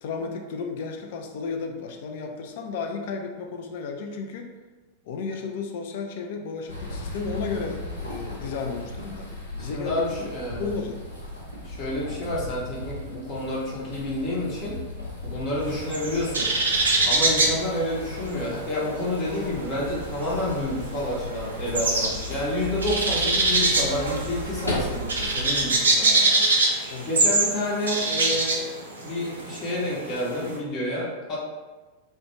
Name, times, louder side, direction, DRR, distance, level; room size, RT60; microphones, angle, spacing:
voice 1, 0.0-4.5 5.0-9.3 9.6-10.3 10.6-11.0 17.0-17.1 26.9-27.1, left 4 dB, 50° left, 4 dB, 0.3 m, -33 dB
sound 1, 6.7-25.6, left 1 dB, 85° left, 0.6 m, -36 dB
voice 2, 9.6-10.7 11.6-14.8 15.2-16.5 17.0-26.2 27.1-28.7 29.0-31.4, left 1 dB, 35° left, -5 dB, 0.8 m, -29 dB
sound 2, 15.6-18.7 19.0-30.5, right 2 dB, 70° right, 0.4 m, -24 dB
2.4 x 2.1 x 3.0 m, 1.3 s
figure-of-eight pair, 90°, 0 cm